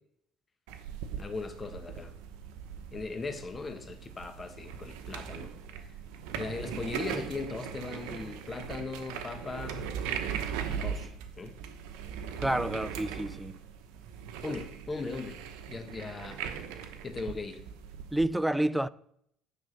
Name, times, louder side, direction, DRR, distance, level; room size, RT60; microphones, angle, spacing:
sound 1, 0.7-18.3, right 8 dB, 85° right, 0.9 m, -39 dB
voice 1, 1.2-2.1 2.9-5.5 6.4-10.0 10.7-11.1 11.4-11.6 14.4-15.4 15.7-16.4 17.0-17.6, left 3 dB, 25° left, 1.1 m, -38 dB
voice 2, 12.4-13.6 18.1-18.9, right 1 dB, 5° right, 0.3 m, -29 dB
9.6 x 3.8 x 6.4 m
supercardioid pair, 95°, 0 cm